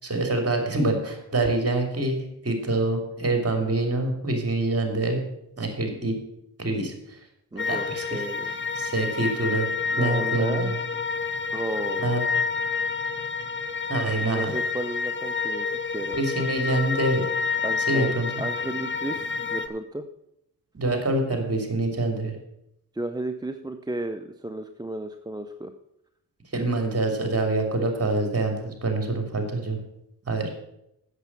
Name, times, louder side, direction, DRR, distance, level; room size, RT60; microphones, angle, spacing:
voice 1, 0.0-5.2 5.6-6.2 6.6-6.9 7.7-8.0 8.7-9.7 10.0-10.7 12.0-12.2 13.9-14.5 16.1-17.3 17.9-18.3 20.7-22.4 26.5-29.8 30.3-30.5, right 2 dB, 35° right, 4 dB, 3.1 m, -25 dB
voice 2, 7.5-8.5 9.9-10.7 11.5-12.2 14.2-16.2 17.6-20.0 22.9-25.7, right 2 dB, 10° right, 8 dB, 0.6 m, -34 dB
sound 1, 7.6-19.7, left 5 dB, 30° left, 1.0 m, -29 dB
8.1 x 7.2 x 7.5 m, 0.82 s
supercardioid pair, 50°, 41 cm